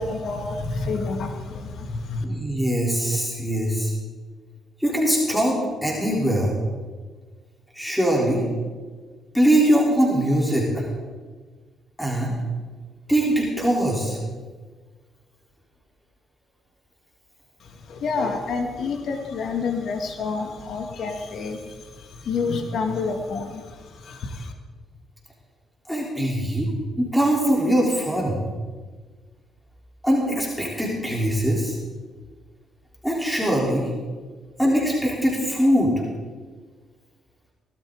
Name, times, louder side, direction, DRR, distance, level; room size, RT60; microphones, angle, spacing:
voice 1, 0.0-2.2 17.9-21.7 22.2-23.6 24.0-24.5, left 4 dB, 65° left, 4 dB, 1.7 m, -28 dB
voice 2, 2.2-3.9 4.8-6.6 7.7-8.5 9.3-10.8 12.0-12.4 13.1-14.2 25.9-26.7 27.0-28.4 30.0-31.8 33.0-33.9 34.6-35.9, equal, ahead, -4 dB, 3.6 m, -22 dB
18.0 x 12.5 x 3.8 m, 1.4 s
cardioid pair, 90°, 0 cm